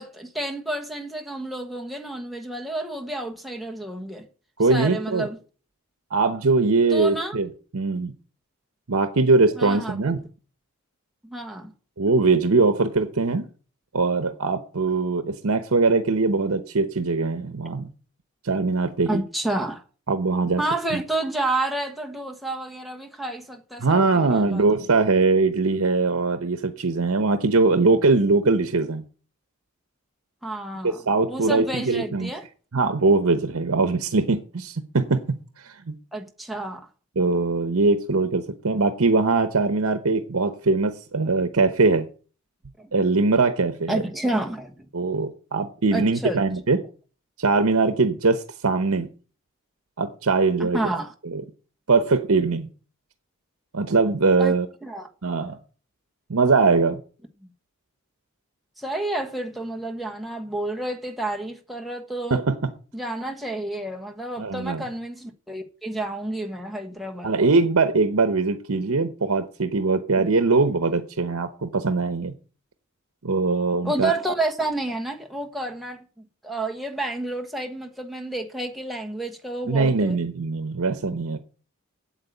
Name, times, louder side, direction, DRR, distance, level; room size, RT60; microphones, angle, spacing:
voice 1, 0.0-4.3 4.7-5.4 6.9-7.4 9.6-10.1 11.2-11.7 19.1-19.8 20.6-24.6 30.4-31.0 31.3-32.5 36.1-36.9 42.8-42.9 43.9-44.9 45.9-46.4 50.6-51.1 54.4-55.1 57.4-57.5 58.8-62.4 62.9-67.5 73.8-80.2, right 2 dB, ahead, 1.2 m, -30 dB
voice 2, 4.6-5.3 6.1-8.1 8.9-10.2 12.0-13.5 13.9-17.9 18.4-19.2 20.1-20.6 20.9-21.0 23.8-29.0 30.8-32.3 32.7-35.2 35.6-35.9 37.2-42.1 42.9-44.0 44.9-46.8 47.4-49.1 50.0-50.8 51.3-51.4 51.9-52.7 53.7-54.7 55.2-55.6 56.3-57.0 62.3-62.5 64.4-64.8 67.2-72.3 73.2-74.1 79.7-81.4, right 3 dB, 80° right, 0.9 m, -21 dB
8.3 x 7.9 x 7.9 m
head